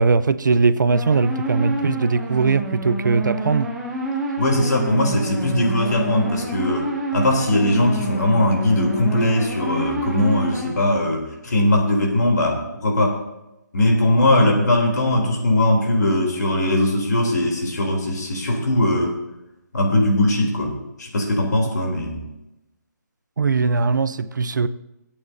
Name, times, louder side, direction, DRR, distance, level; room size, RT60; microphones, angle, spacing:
voice 1, 0.0-3.7 23.4-24.7, right 4 dB, 85° right, 0.6 m, -20 dB
sound 1, 0.9-10.7, right 2 dB, 5° right, 0.6 m, -28 dB
voice 2, 4.4-13.2 13.7-19.1 19.7-22.2, left 1 dB, 70° left, 3.2 m, -20 dB
22.5 x 8.7 x 2.7 m
hypercardioid pair, 175°, 10 cm